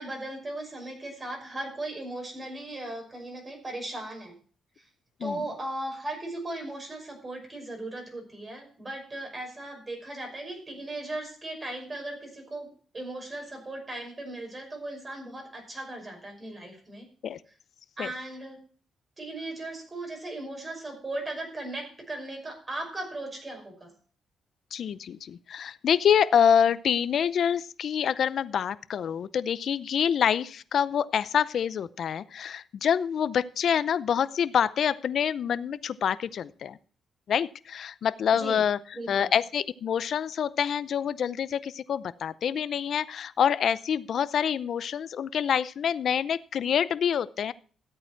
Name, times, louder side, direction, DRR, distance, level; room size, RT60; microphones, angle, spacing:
voice 1, 0.0-4.4 5.2-17.1 18.0-18.6 19.2-23.9 38.3-38.6 38.9-39.3, right 2 dB, 30° right, 2 dB, 5.8 m, -37 dB
voice 2, 24.7-36.8 37.3-38.8 39.1-47.5, left 8 dB, 65° left, 16 dB, 0.6 m, -26 dB
13.5 x 8.8 x 4.6 m, 0.43 s
cardioid pair, 90°, 0 cm